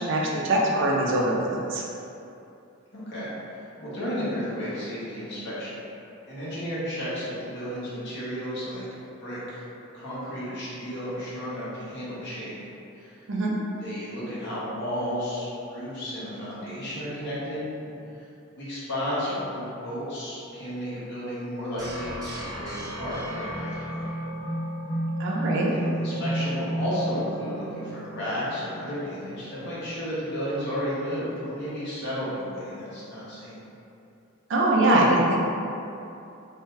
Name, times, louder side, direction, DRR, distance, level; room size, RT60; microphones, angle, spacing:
voice 1, 0.0-1.8 13.3-13.5 25.2-25.7 34.5-35.4, right 1 dB, 60° right, -3 dB, 0.5 m, -22 dB
voice 2, 2.9-5.7 6.3-8.8 9.2-9.6 9.9-12.5 12.9-13.2 13.8-18.2 18.5-24.0 25.3-25.4 25.7-33.6, equal, 55° left, -10 dB, 1.0 m, -33 dB
sound 1, 21.8-28.7, right 1 dB, 20° right, 0.7 m, -32 dB
2.7 x 2.3 x 3.2 m, 2.8 s
head